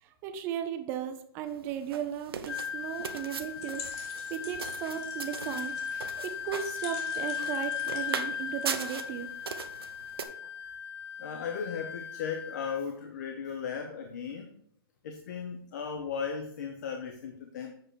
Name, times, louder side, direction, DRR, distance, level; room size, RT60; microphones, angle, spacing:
voice 1, 0.0-5.8 6.2-9.3, right 9 dB, 15° right, 8 dB, 0.4 m, -36 dB
sound 1, 1.5-10.2, right 7 dB, 75° right, 0.8 m, -40 dB
Wind instrument woodwind instrument, 2.5-12.8, left 7 dB, 80° left, 0.5 m, -37 dB
sound 2, 3.5-9.1, left 5 dB, 30° left, 1.4 m, -48 dB
voice 2, 11.2-14.6 15.0-17.7, left 6 dB, 45° left, 5 dB, 0.8 m, -36 dB
7.7 x 4.9 x 4.4 m, 0.66 s
hypercardioid pair, 165°, 13 cm